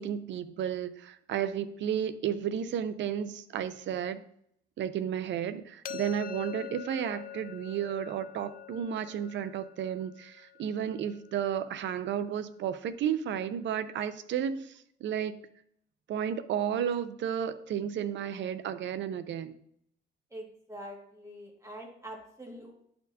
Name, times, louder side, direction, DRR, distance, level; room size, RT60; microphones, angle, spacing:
voice 1, 0.0-4.2 4.8-15.4 16.1-19.6, right 9 dB, 65° right, 12 dB, 0.6 m, -33 dB
sound 1, 5.8-11.7, left 11 dB, 45° left, 0.4 m, -45 dB
voice 2, 20.3-22.7, equal, 15° right, -1 dB, 1.9 m, -44 dB
10.5 x 4.3 x 2.8 m, 0.68 s
cardioid pair, 90°, 20 cm